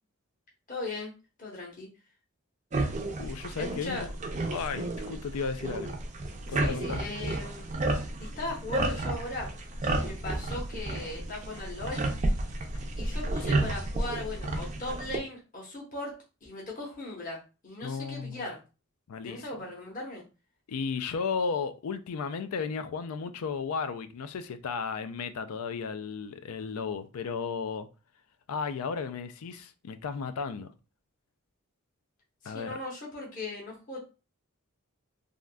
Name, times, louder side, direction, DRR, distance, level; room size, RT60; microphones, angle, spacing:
voice 1, 0.7-1.1 1.4-1.9 3.6-4.1 6.5-7.7 8.2-9.5 9.8-12.0 13.0-18.6 19.2-20.2 32.4-34.0, left 2 dB, 40° left, 0.9 m, -38 dB
sound 1, 2.7-15.2, right 2 dB, 35° right, 0.4 m, -32 dB
voice 2, 3.2-4.1 4.5-6.0 6.5-7.0 17.8-18.4 19.1-19.4 20.7-27.9 28.5-30.7 32.5-32.8, left 5 dB, 85° left, 0.4 m, -34 dB
3.5 x 2.5 x 2.2 m
head